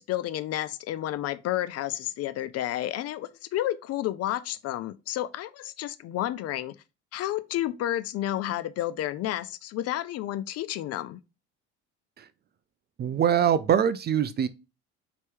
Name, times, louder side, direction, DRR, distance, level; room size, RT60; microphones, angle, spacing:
voice 1, 0.0-6.7 7.1-11.2, left 13 dB, 45° left, 0.4 m, -31 dB
voice 2, 13.0-14.5, right 9 dB, 30° right, 0.4 m, -23 dB
4.4 x 3.0 x 3.3 m
hypercardioid pair, 70°, 34 cm